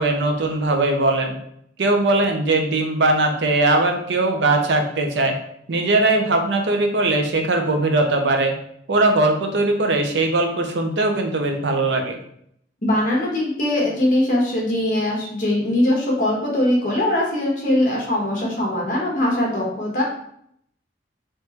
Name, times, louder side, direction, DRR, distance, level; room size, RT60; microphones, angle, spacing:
voice 1, 0.0-1.4 1.8-5.4 5.7-8.5 8.9-12.2, right 2 dB, 90° right, 4 dB, 0.6 m, -20 dB
voice 2, 12.8-20.0, left 1 dB, 50° left, -2 dB, 1.1 m, -21 dB
3.4 x 3.1 x 2.9 m, 0.70 s
head